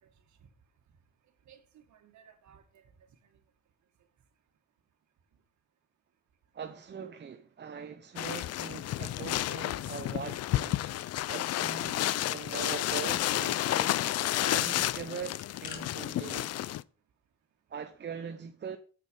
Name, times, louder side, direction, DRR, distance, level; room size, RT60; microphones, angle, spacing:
voice 1, 1.5-3.4, right 8 dB, 70° right, 1.9 m, -59 dB
voice 2, 6.5-10.9 11.3-14.0 14.4-16.6 17.7-18.8, right 6 dB, 35° right, 0.8 m, -42 dB
sound 1, 8.2-16.8, left 14 dB, 55° left, 0.4 m, -31 dB
sound 2, 13.9-14.1 15.1-15.8, left 8 dB, 90° left, 1.5 m, -49 dB
7.7 x 6.8 x 5.4 m
cardioid pair, 90°, 30 cm